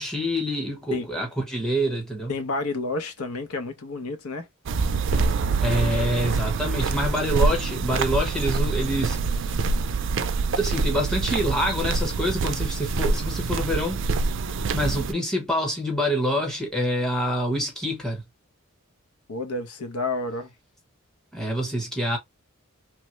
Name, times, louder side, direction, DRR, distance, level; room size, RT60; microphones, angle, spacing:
voice 1, 0.0-2.3 5.6-9.7 10.6-14.0 14.7-18.2 21.3-22.2, equal, 5° left, 1.0 m, -26 dB
voice 2, 2.3-4.5 19.3-20.5, left 2 dB, 90° left, 0.8 m, -30 dB
sound 1, 4.7-15.1, right 4 dB, 55° right, 0.4 m, -25 dB
3.1 x 2.1 x 3.1 m
head